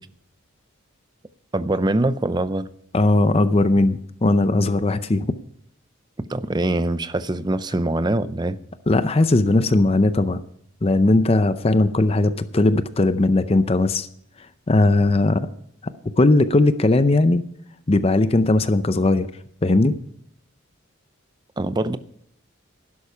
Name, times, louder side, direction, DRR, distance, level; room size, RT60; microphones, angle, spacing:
voice 1, 1.5-2.7 6.2-8.6 21.6-22.0, right 1 dB, 20° right, 0.5 m, -23 dB
voice 2, 2.9-5.3 8.9-10.4 10.8-14.1 14.7-15.5 16.2-17.5 17.9-19.3 19.6-20.0, left 2 dB, 30° left, 0.5 m, -18 dB
12.0 x 11.0 x 5.6 m
head